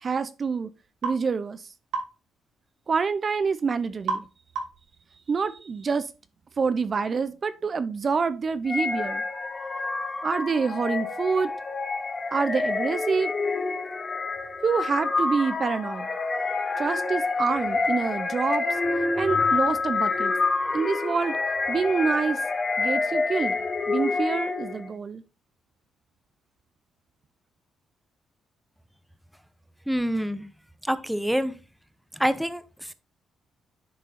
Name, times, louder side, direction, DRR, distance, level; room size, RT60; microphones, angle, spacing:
voice 1, 0.0-0.7 1.0-1.6 2.9-4.2 5.3-6.1 6.6-9.2 10.2-11.5 12.3-13.3 14.6-16.1 16.8-18.6 19.2-20.3 20.7-21.4 21.7-22.4 22.8-23.6 23.9-25.2, right 5 dB, 40° right, 0.5 m, -26 dB
sound 1, 1.0-1.2 1.9-2.1 4.1-4.3 4.6-4.9, right 4 dB, 85° right, 2.4 m, -30 dB
sound 2, 8.7-24.9, left 3 dB, 30° left, 1.2 m, -27 dB
voice 2, 29.9-30.4 30.8-31.5 32.1-32.9, equal, ahead, 0.8 m, -26 dB
10.0 x 3.7 x 4.1 m
cardioid pair, 90°, 0 cm